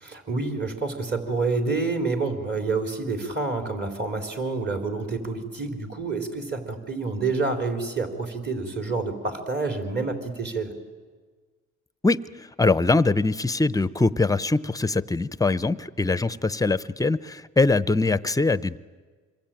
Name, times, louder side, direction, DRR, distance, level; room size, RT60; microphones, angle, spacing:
voice 1, 0.1-10.7, right 3 dB, 35° right, 4 dB, 3.9 m, -28 dB
voice 2, 12.0-18.8, left 3 dB, 10° left, 16 dB, 0.7 m, -23 dB
26.5 x 22.5 x 9.1 m, 1.4 s
cardioid pair, 90°, 30 cm